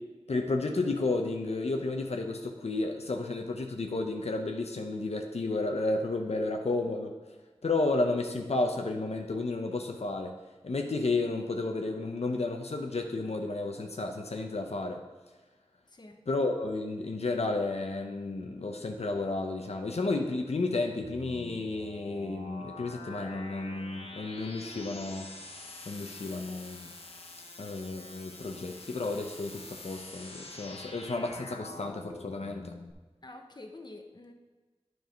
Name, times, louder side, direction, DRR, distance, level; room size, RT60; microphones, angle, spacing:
voice 1, 0.3-7.1 7.6-10.3 10.6-15.0 16.3-25.3 25.9-26.9 27.6-32.7, left 2 dB, 90° left, 3 dB, 0.7 m, -32 dB
voice 2, 15.9-16.2 33.2-34.3, left 2 dB, 45° left, 4 dB, 0.9 m, -47 dB
sound 1, 21.0-32.9, left 2 dB, 70° left, 1.0 m, -46 dB
9.3 x 4.7 x 5.2 m, 1.2 s
wide cardioid pair, 60°, 11 cm